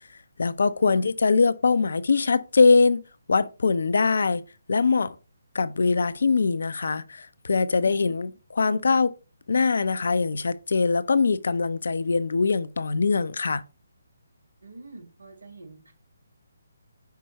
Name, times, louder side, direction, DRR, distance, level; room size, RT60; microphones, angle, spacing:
voice 1, 0.4-3.0 3.3-4.4 4.7-5.1 5.5-9.1 9.5-13.6, left 4 dB, 60° left, 0.5 m, -22 dB
voice 2, 14.6-15.9, right 3 dB, 75° right, 2.0 m, -46 dB
5.7 x 4.5 x 4.2 m
figure-of-eight pair, 140°, 0 cm